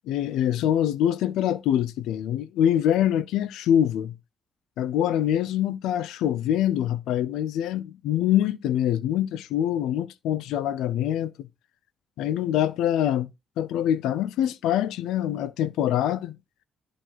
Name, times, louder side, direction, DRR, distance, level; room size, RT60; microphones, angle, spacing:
voice 1, 0.1-4.1 4.8-11.5 12.2-13.3 13.6-16.4, left 11 dB, 90° left, 0.5 m, -24 dB
11.0 x 3.7 x 4.6 m
cardioid pair, 90°, 0 cm